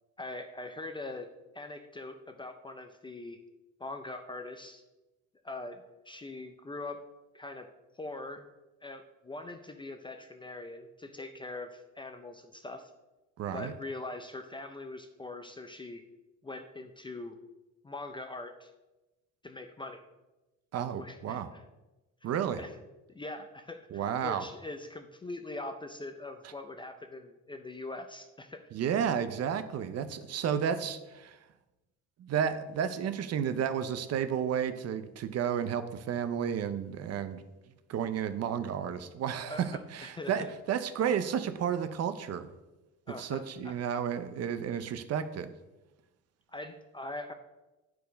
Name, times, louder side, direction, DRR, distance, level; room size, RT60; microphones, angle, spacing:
voice 1, 0.2-1.3 1.5-3.4 3.8-4.8 5.4-7.0 7.3-7.7 8.0-8.4 8.8-12.9 13.5-16.0 16.4-17.4 17.8-18.7 19.4-20.0 21.0-21.6 22.2-22.3 22.6-22.7 23.1-28.6 39.5-40.5 43.1-43.7 46.5-47.3, left 2 dB, 15° left, 6 dB, 0.4 m, -42 dB
voice 2, 13.4-13.7 20.7-21.5 22.2-22.6 23.9-24.4 28.7-31.4 32.2-37.4 37.9-42.5 43.2-45.5, right 8 dB, 50° right, 11 dB, 0.6 m, -32 dB
10.5 x 4.7 x 5.1 m, 1.1 s
cardioid pair, 160°, 33 cm